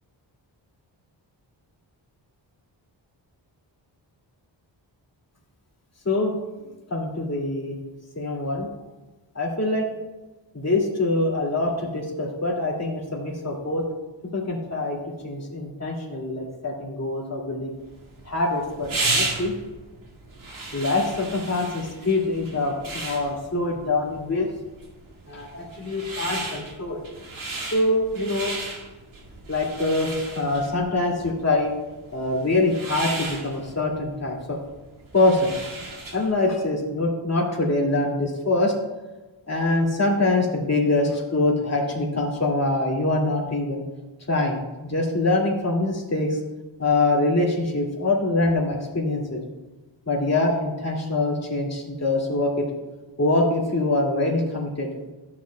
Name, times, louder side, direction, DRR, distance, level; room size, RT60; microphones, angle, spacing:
voice 1, 6.9-7.7 8.2-8.7 9.3-9.9 10.5-13.9 14.3-17.7 18.3-19.6 20.7-24.5 25.3-27.0 27.7-28.6 29.5-31.7 32.1-34.6 35.1-35.5 36.1-38.7 39.5-43.8 44.3-44.6 44.8-46.4 46.8-49.4 50.1-52.7 53.2-54.9, left 2 dB, 35° left, -2 dB, 2.4 m, -24 dB
sound 1, 17.8-36.4, right 2 dB, 80° right, 2.4 m, -34 dB
14.0 x 7.4 x 2.3 m, 1.2 s
wide cardioid pair, 110°, 46 cm